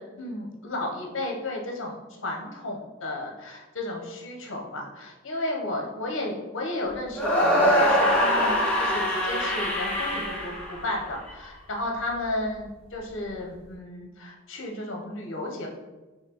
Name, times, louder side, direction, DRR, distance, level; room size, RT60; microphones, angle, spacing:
voice 1, 0.0-2.0 2.2-15.7, left 1 dB, 70° left, 0 dB, 0.9 m, -33 dB
sound 1, 7.1-11.3, equal, 5° left, 0.9 m, -23 dB
5.8 x 2.7 x 3.0 m, 1.2 s
head